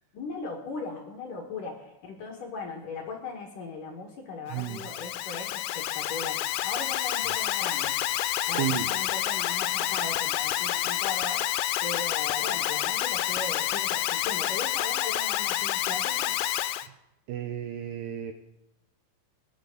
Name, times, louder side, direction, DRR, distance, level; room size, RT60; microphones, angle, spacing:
voice 1, 0.1-7.9 8.5-11.5 11.8-16.3, left 4 dB, 60° left, 0 dB, 2.5 m, -38 dB
Alarm, 4.5-16.9, left 14 dB, 85° left, 3.2 m, -29 dB
voice 2, 4.5-4.8 8.5-8.9 17.3-18.3, right 11 dB, 80° right, 6 dB, 2.4 m, -32 dB
22.0 x 11.0 x 3.9 m, 0.91 s
omnidirectional pair, 5.6 m